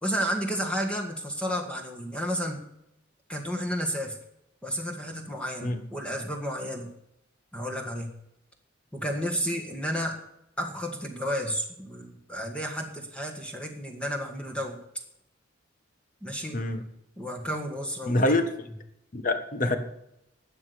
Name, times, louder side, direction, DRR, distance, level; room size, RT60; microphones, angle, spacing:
voice 1, 0.0-2.6 3.3-4.2 4.6-6.9 7.5-8.1 8.9-10.2 10.6-14.8 16.2-16.6 17.2-18.2, equal, 5° left, 1 dB, 1.7 m, -32 dB
voice 2, 18.1-18.4 19.1-19.8, left 2 dB, 45° left, 8 dB, 1.4 m, -25 dB
12.0 x 8.2 x 6.9 m, 0.81 s
head